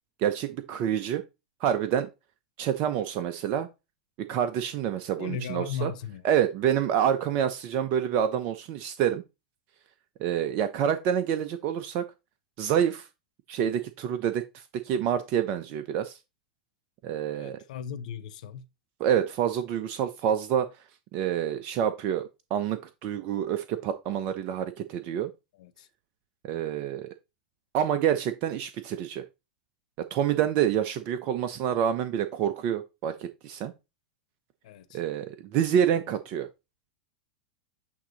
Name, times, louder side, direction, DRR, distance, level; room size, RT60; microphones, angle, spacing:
voice 1, 0.2-1.2 1.6-2.1 2.6-3.7 4.2-5.9 6.2-9.2 10.2-12.1 12.6-13.1 13.5-16.2 17.0-17.6 19.0-20.7 21.1-25.3 26.4-27.1 27.7-29.2 30.0-33.7 34.9-36.5, right 9 dB, 45° right, 0.7 m, -27 dB
voice 2, 5.2-6.2 17.3-18.6 25.6-25.9 34.6-35.0, left 7 dB, 65° left, 0.8 m, -37 dB
8.4 x 2.8 x 4.0 m
hypercardioid pair, 100°, 4 cm